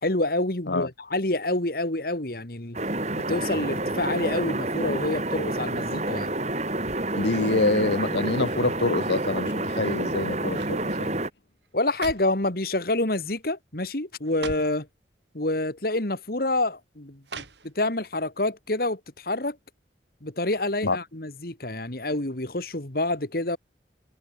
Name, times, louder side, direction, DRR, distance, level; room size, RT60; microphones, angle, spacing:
voice 1, 0.0-2.8 3.1-6.3 11.7-14.9 15.3-19.6 20.2-23.6, left 2 dB, 55° left, 2.3 m, -27 dB
sound 1, 2.7-11.3, right 2 dB, 40° right, 4.8 m, -29 dB
voice 2, 7.2-11.1 20.8-21.0, left 2 dB, 70° left, 1.2 m, -26 dB
sound 2, 10.5-10.8 11.6-12.4 13.2-13.5 13.8-13.9 14.2-14.8 15.8-15.9 17.2-18.0 18.4-18.5, right 4 dB, 70° right, 3.0 m, -41 dB
head